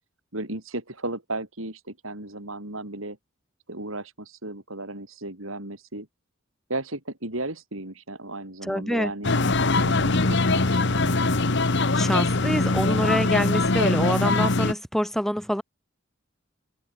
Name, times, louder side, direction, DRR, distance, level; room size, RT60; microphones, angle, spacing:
voice 1, 0.3-3.2 3.7-6.1 6.7-9.4 9.8-11.2, right 2 dB, 80° right, 7.0 m, -35 dB
voice 2, 8.6-9.1 11.9-15.6, equal, ahead, 6.2 m, -26 dB
sound 1, 9.2-14.7, left 3 dB, 60° left, 1.5 m, -22 dB
open air
head